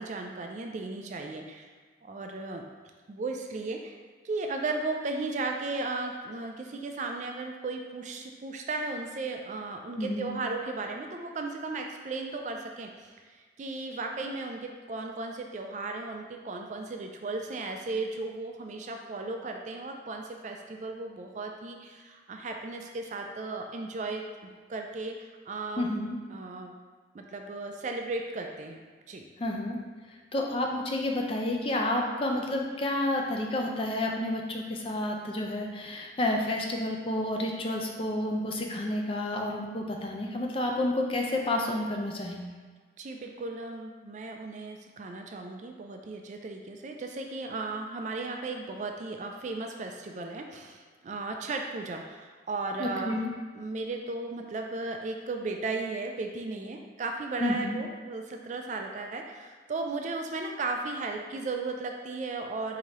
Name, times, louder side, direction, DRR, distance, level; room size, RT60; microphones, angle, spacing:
voice 1, 0.0-1.7 2.0-2.6 3.1-4.0 4.2-25.9 26.3-26.7 27.1-28.8 29.1-29.3 43.0-53.2 53.5-62.8, right 3 dB, 40° right, 3 dB, 0.3 m, -35 dB
voice 2, 10.0-10.3 25.8-26.2 29.4-29.8 30.3-42.5 52.8-53.3 57.4-57.8, left 1 dB, 30° left, 1 dB, 0.4 m, -30 dB
4.9 x 2.7 x 3.0 m, 1.5 s
head